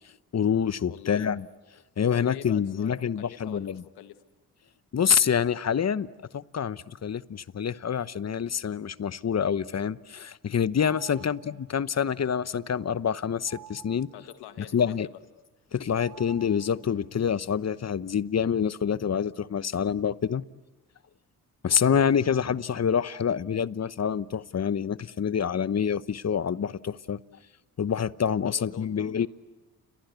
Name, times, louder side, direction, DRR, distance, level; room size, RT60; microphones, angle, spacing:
voice 1, 0.3-1.4 2.0-3.8 4.9-6.1 6.3-14.1 14.7-15.1 15.7-20.4 21.6-27.2 27.8-29.3, left 7 dB, 40° left, 16 dB, 1.0 m, -27 dB
voice 2, 0.9-1.3 2.1-4.2 11.1-11.4 14.1-15.0 28.5-29.3, left 11 dB, 85° left, 9 dB, 1.8 m, -45 dB
sound 1, 10.8-11.8 13.5-14.5 16.0-17.1, right 11 dB, 85° right, 2.8 m, -50 dB
30.0 x 24.0 x 8.2 m, 1.1 s
supercardioid pair, 50°, 38 cm